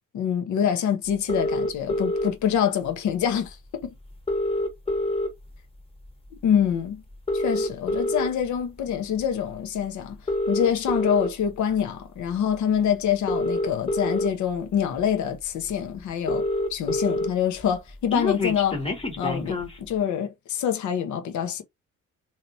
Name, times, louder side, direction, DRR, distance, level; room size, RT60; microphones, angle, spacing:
voice 1, 0.1-3.9 6.4-7.0 7.3-10.2 10.5-18.8 19.2-21.6, left 8 dB, 70° left, 0.9 m, -26 dB
sound 1, 1.3-2.3 3.5-3.6 3.8-3.9 4.1-5.6 6.0-6.3 7.1-8.3 9.0-9.2 10.1-11.3 12.5-12.6 13.1-14.3 15.0-15.1 15.4-15.5 15.7-15.8 16.0-17.3 17.6-19.8, left 1 dB, 20° left, 1.0 m, -26 dB
3.0 x 2.9 x 2.6 m
cardioid pair, 90°, 30 cm